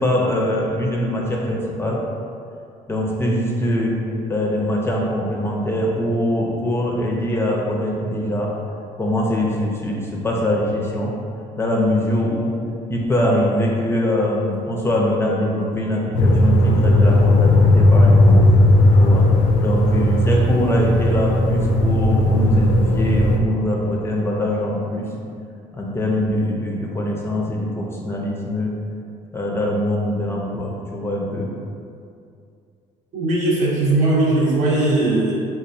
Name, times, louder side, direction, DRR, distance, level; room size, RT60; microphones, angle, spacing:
voice 1, 0.0-2.0 2.9-3.9 4.3-8.5 9.0-11.2 11.6-12.6 12.9-18.4 19.0-19.3 19.6-25.1 25.7-28.7 29.3-31.5, left 1 dB, 15° left, -2 dB, 0.5 m, -23 dB
sound 1, 16.1-23.4, left 1 dB, 80° left, 0.4 m, -15 dB
voice 2, 33.1-35.4, right 2 dB, 60° right, -5 dB, 0.9 m, -19 dB
4.3 x 2.3 x 2.6 m, 2.4 s
cardioid pair, 110°, 14 cm